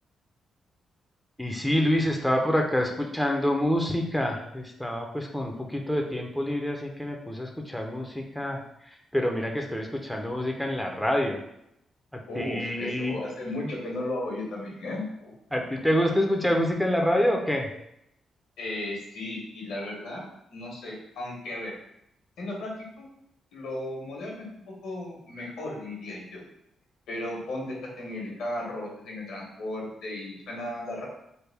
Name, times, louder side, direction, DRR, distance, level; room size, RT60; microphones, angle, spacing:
voice 1, 1.4-11.4 12.1-13.2 15.5-17.7, equal, ahead, 1 dB, 0.6 m, -27 dB
voice 2, 12.3-15.3 18.6-21.8 22.4-23.1 23.5-26.4 27.1-31.1, left 1 dB, 80° left, -2 dB, 1.1 m, -35 dB
3.4 x 2.1 x 3.4 m, 0.78 s
supercardioid pair, 55°, 0 cm